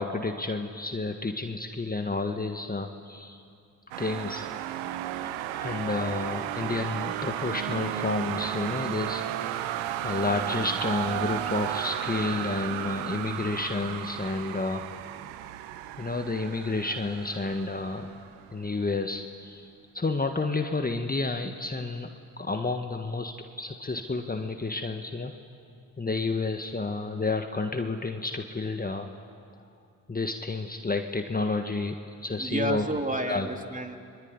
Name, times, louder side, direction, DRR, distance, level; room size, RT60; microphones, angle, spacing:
voice 1, 0.0-3.4 4.0-4.5 5.2-15.0 16.0-18.1 18.5-19.7 19.9-22.1 22.4-23.3 23.6-25.3 26.0-29.1 30.1-31.9 32.2-32.8 33.3-33.5, left 3 dB, 20° left, 5 dB, 1.6 m, -30 dB
sound 1, 3.9-18.8, right 12 dB, 85° right, 1.1 m, -34 dB
voice 2, 32.4-34.0, right 1 dB, 15° right, 4 dB, 2.8 m, -30 dB
25.5 x 22.0 x 9.8 m, 2.4 s
hypercardioid pair, 55°, 45 cm